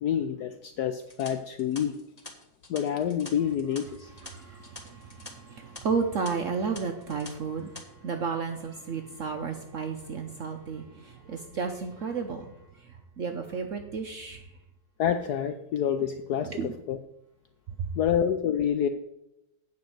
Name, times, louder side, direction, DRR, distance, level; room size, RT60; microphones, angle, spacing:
voice 1, 0.0-1.9 2.7-4.1 15.0-17.0 17.9-18.9, left 9 dB, 85° left, 9 dB, 0.8 m, -28 dB
sound 1, 1.0-5.3 5.6-5.8 6.2-6.3 6.7-7.3 7.6-7.8, left 3 dB, 20° left, 1.3 m, -46 dB
voice 2, 4.1-14.5 16.5-16.7 17.8-17.9, right 5 dB, 80° right, 5 dB, 0.7 m, -33 dB
8.8 x 5.3 x 7.8 m, 0.85 s
omnidirectional pair, 2.3 m